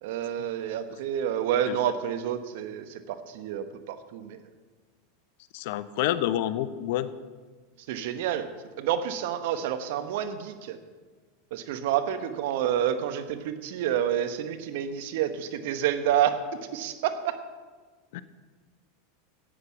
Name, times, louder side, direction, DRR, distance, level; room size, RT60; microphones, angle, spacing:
voice 1, 0.0-4.4 7.9-8.5 8.8-10.8 11.5-16.4 16.7-17.3, right 10 dB, 65° right, 10 dB, 1.0 m, -29 dB
voice 2, 5.5-7.1 18.1-18.2, left 12 dB, 65° left, 15 dB, 0.6 m, -28 dB
11.0 x 8.1 x 5.8 m, 1.4 s
hypercardioid pair, 100°, 0 cm